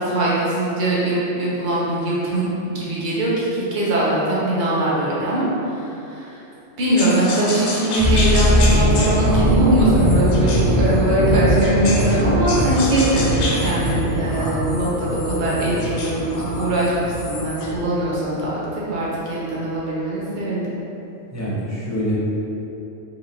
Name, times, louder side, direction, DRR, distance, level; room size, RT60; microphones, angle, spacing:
voice 1, 0.0-6.4 6.8-20.8, right 1 dB, 45° right, -7 dB, 0.9 m, -21 dB
sound 1, 7.0-12.2 12.5-17.8, left 2 dB, 60° left, 0.6 m, -30 dB
sound 2, 8.0-18.0 18.2-18.5, equal, 60° right, 1.4 m, -21 dB
voice 2, 10.4-11.3 14.1-14.4 21.3-22.2, equal, 15° left, -8 dB, 0.7 m, -27 dB
3.8 x 3.0 x 2.7 m, 3.0 s
omnidirectional pair, 1.2 m